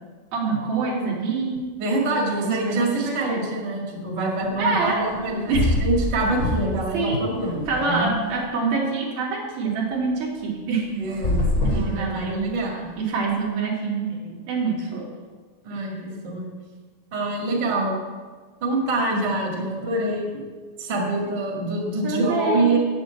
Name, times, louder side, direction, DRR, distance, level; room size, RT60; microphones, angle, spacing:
voice 1, 0.3-1.8 2.3-3.5 4.6-5.1 5.5-5.7 6.9-7.3 7.7-11.0 11.6-12.5 13.0-15.1 15.7-15.8 22.0-22.8, right 4 dB, 55° right, -4 dB, 3.8 m, -26 dB
voice 2, 1.8-8.1 11.0-11.4 11.7-12.9 15.6-16.5 17.1-18.0 18.6-20.3 20.8-22.8, right 2 dB, 85° right, -1 dB, 0.9 m, -25 dB
sound 1, 5.1-5.2 5.5-6.9 7.2-8.3 11.0-12.6, left 2 dB, 30° left, 3.1 m, -24 dB
8.2 x 7.6 x 8.4 m, 1.4 s
omnidirectional pair, 5.6 m